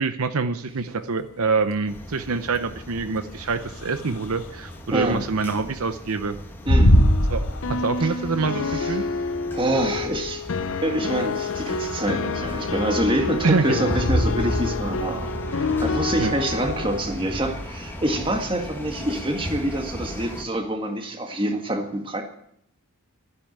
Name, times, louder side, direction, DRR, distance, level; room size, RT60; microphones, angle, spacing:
voice 1, 0.0-6.4 7.3-9.0 13.4-13.8 16.2-16.3, right 4 dB, 70° right, 10 dB, 0.7 m, -25 dB
sound 1, 0.7-19.8, equal, 75° left, 1.6 m, -27 dB
sound 2, 1.9-20.4, left 1 dB, 10° left, 1.8 m, -37 dB
voice 2, 4.9-5.2 6.7-7.0 8.0-8.1 8.6-9.1 9.5-10.4 10.8-22.2, right 1 dB, 25° right, 4 dB, 1.7 m, -26 dB
sound 3, 6.9-17.0, left 4 dB, 60° left, 0.6 m, -29 dB
12.5 x 10.0 x 8.8 m, 0.73 s
head